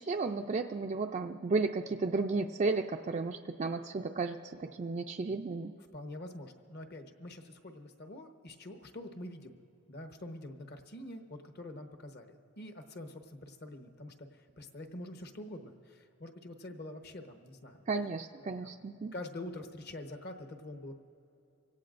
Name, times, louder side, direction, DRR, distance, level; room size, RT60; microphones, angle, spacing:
voice 1, 0.0-5.7 17.9-19.1, right 3 dB, 35° right, 3 dB, 0.3 m, -33 dB
voice 2, 5.9-9.6 9.9-17.9 18.4-18.8 19.1-21.0, left 1 dB, 50° left, 5 dB, 1.1 m, -46 dB
25.5 x 17.0 x 2.5 m, 2.7 s
head